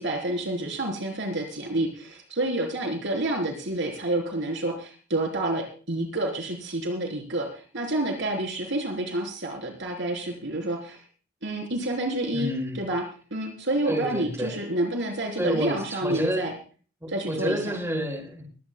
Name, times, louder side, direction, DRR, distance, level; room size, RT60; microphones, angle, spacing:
voice 1, 0.0-11.0 11.4-13.0 13.3-16.5 17.1-17.8, right 1 dB, 60° right, 2 dB, 3.7 m, -29 dB
voice 2, 12.3-12.8 13.9-14.6 15.4-16.5 17.0-18.5, equal, 15° right, 2 dB, 5.5 m, -29 dB
22.5 x 17.0 x 2.2 m, 0.40 s
head